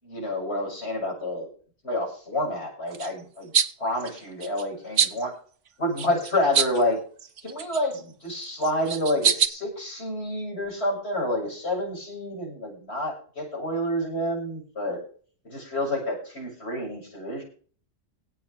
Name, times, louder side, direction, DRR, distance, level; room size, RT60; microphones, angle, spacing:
voice 1, 0.0-1.5 1.8-3.5 3.8-5.3 5.8-7.0 7.4-15.0 15.4-17.4, left 1 dB, 55° left, 0 dB, 7.2 m, -28 dB
sound 1, 2.9-3.1 3.5-3.7 4.0-4.6 5.0-5.2 6.0-6.8 7.2-8.0 8.6-9.5, right 7 dB, 75° right, 1.4 m, -24 dB
17.0 x 5.8 x 6.8 m, 0.42 s
omnidirectional pair, 1.3 m